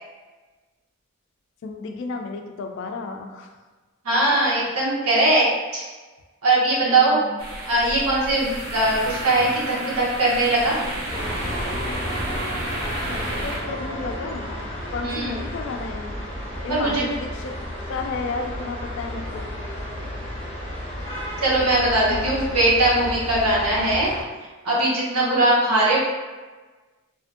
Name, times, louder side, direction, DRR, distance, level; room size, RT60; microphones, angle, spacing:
voice 1, 1.6-3.5 6.8-7.4 13.1-14.5 14.9-16.2 16.6-17.5 17.9-19.5 22.0-22.6 23.3-23.5 25.1-25.4, left 4 dB, 55° left, 4 dB, 0.3 m, -32 dB
voice 2, 4.0-5.5 5.7-5.8 6.4-7.2 7.6-10.7 15.0-15.4 16.7-17.0 21.4-24.1 24.6-26.0, right 2 dB, 85° right, -5 dB, 0.9 m, -20 dB
sound 1, 7.4-13.6, right 1 dB, 60° right, 0.6 m, -32 dB
sound 2, 11.1-24.2, equal, 25° left, 0.9 m, -32 dB
2.7 x 2.5 x 2.5 m, 1.3 s
head